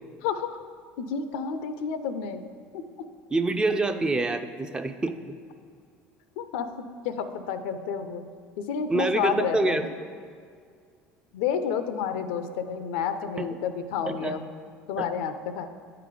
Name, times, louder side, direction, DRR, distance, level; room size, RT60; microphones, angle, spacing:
voice 1, 0.2-0.6 1.0-2.4 2.7-2.8 6.4-8.3 8.6-9.9 11.3-14.5 14.9-15.7, left 7 dB, 85° left, 10 dB, 0.5 m, -30 dB
voice 2, 3.3-5.2 8.9-9.9 13.4-13.5 14.1-14.4, right 2 dB, 15° right, 8 dB, 0.4 m, -26 dB
8.6 x 3.9 x 5.0 m, 2.1 s
supercardioid pair, 95°, 5 cm